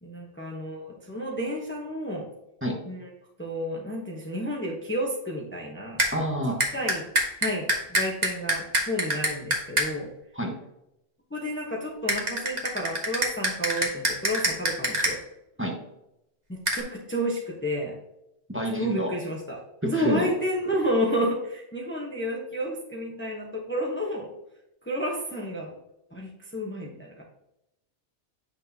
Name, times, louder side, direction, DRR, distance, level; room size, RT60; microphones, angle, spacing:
voice 1, 0.0-2.3 2.8-3.1 3.4-6.0 6.7-7.1 7.4-10.1 11.3-15.2 16.5-17.9 18.7-24.3 24.8-25.8 26.1-27.2, equal, 10° left, -1 dB, 1.0 m, -31 dB
sound 1, 6.0-6.1 6.6-9.9 12.1-15.1 16.7-16.8, right 1 dB, 40° right, 1.6 m, -25 dB
voice 2, 6.1-6.6 10.3-10.5 15.6-15.8 18.5-19.1 19.8-20.3, equal, 10° right, 0 dB, 1.3 m, -28 dB
8.8 x 6.3 x 2.8 m, 0.85 s
omnidirectional pair, 1.2 m